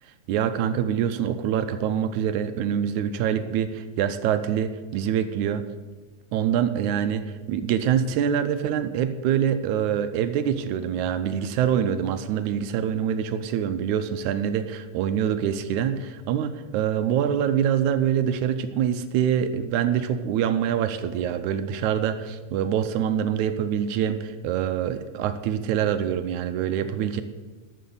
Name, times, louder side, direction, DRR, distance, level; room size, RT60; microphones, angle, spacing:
voice 1, 0.0-5.6 6.3-27.2, right 9 dB, 80° right, 10 dB, 1.9 m, -25 dB
13.5 x 6.4 x 7.0 m, 1.3 s
omnidirectional pair, 3.7 m